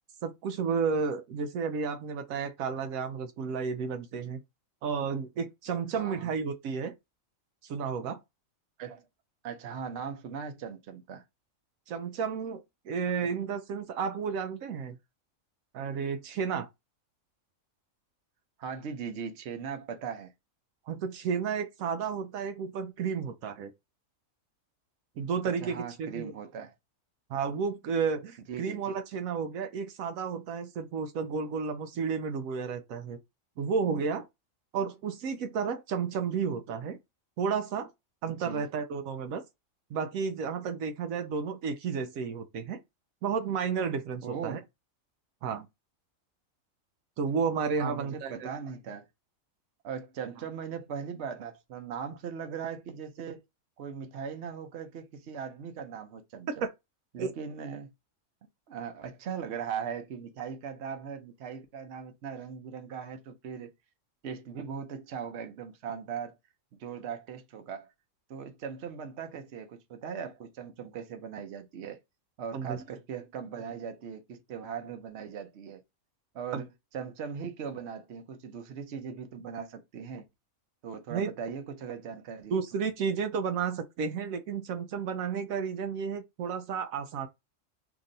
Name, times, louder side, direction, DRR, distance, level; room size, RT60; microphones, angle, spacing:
voice 1, 0.2-4.4 4.8-6.9 7.6-8.2 11.9-15.0 15.7-16.7 20.9-23.7 25.2-26.3 27.3-33.2 33.6-34.3 34.7-37.0 37.4-37.9 38.2-39.4 39.9-42.8 43.2-44.6 45.4-45.7 47.2-48.5 56.6-56.7 57.2-57.3 72.5-72.8 76.5-76.6 81.1-81.3 82.5-87.3, right 6 dB, 85° right, 1.0 m, -32 dB
voice 2, 6.0-6.3 8.8-9.0 9.4-11.2 13.2-13.4 18.6-20.3 25.6-26.7 28.5-28.8 38.3-38.7 44.2-44.6 47.8-49.1 49.8-53.4 53.8-56.6 57.1-57.9 58.7-63.7 64.2-66.3 66.8-67.9 68.3-72.0 72.4-75.8 76.3-76.7 76.9-80.2 80.8-82.6, right 7 dB, 60° right, 0.9 m, -39 dB
2.9 x 2.6 x 3.8 m
omnidirectional pair, 1.4 m